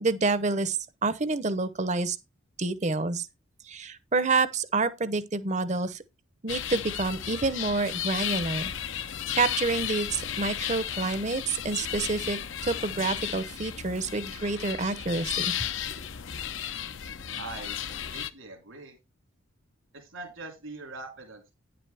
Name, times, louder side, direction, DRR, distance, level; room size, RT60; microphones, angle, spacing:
voice 1, 0.0-2.2 2.6-3.3 3.7-6.0 6.4-8.7 9.3-15.5, right 3 dB, 35° right, 0.7 m, -28 dB
sound 1, 6.5-18.3, left 9 dB, 70° left, 0.7 m, -34 dB
voice 2, 17.4-19.0 19.9-21.5, right 3 dB, 85° right, 3.4 m, -42 dB
9.9 x 7.7 x 3.4 m
head